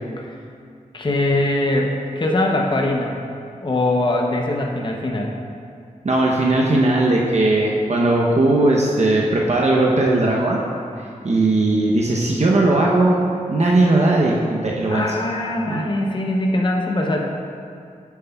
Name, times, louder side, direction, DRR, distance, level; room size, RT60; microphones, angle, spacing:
voice 1, 0.9-3.2 3.6-5.3 14.9-17.2, left 1 dB, 35° left, 0 dB, 0.7 m, -21 dB
voice 2, 6.0-10.6 11.0-13.2 13.5-15.2 15.7-15.8, right 2 dB, 55° right, -3 dB, 0.8 m, -18 dB
8.9 x 7.9 x 2.3 m, 2.3 s
wide cardioid pair, 65°, 14 cm